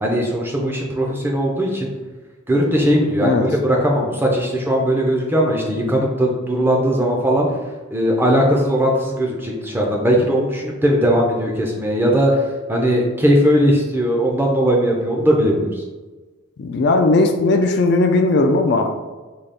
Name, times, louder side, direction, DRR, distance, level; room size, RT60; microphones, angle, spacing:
voice 1, 0.0-1.9 2.5-7.5 7.9-12.4 12.7-15.8, equal, 10° right, -1 dB, 0.5 m, -18 dB
voice 2, 16.6-18.9, left 2 dB, 55° left, 4 dB, 0.3 m, -17 dB
3.8 x 2.3 x 3.4 m, 1.3 s
head